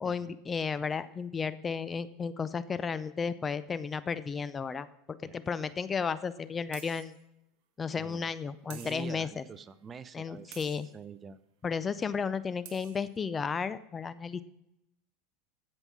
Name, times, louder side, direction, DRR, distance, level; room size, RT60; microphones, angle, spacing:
voice 1, 0.0-7.1 7.8-9.4 10.1-10.9 11.6-14.4, left 5 dB, 20° left, 15 dB, 0.5 m, -33 dB
sound 1, 5.5-5.6 6.7-7.2 8.7-9.3 10.5-10.9 12.3-12.4 12.6-13.1, right 10 dB, 60° right, 1.5 m, -50 dB
voice 2, 8.0-8.3 8.7-10.6 10.8-11.4, right 6 dB, 25° right, 16 dB, 0.6 m, -46 dB
15.5 x 5.4 x 6.1 m, 0.83 s
supercardioid pair, 115°, 0 cm